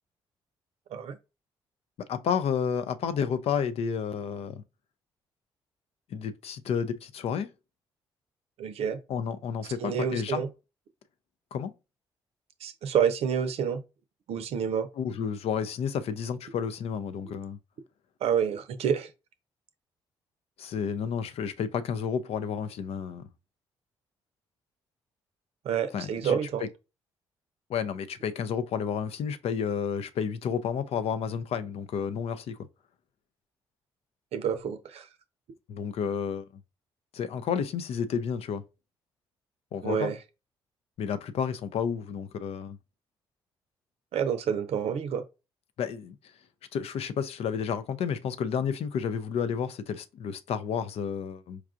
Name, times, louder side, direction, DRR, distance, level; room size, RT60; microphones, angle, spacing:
voice 1, 2.0-4.6 6.1-7.5 9.1-10.4 11.5-11.7 14.9-17.6 20.6-23.3 25.9-26.7 27.7-32.6 35.7-36.6 37.1-38.6 39.7-40.1 41.0-42.8 45.8-46.2 46.7-51.6, left 7 dB, 60° left, 0.5 m, -31 dB
voice 2, 8.6-9.0 9.8-10.5 12.6-13.8 14.3-14.9 18.2-19.1 25.6-26.6 34.3-35.1 39.8-40.2 44.1-45.2, right 8 dB, 65° right, 0.6 m, -28 dB
4.6 x 2.4 x 2.4 m
hypercardioid pair, 50°, 11 cm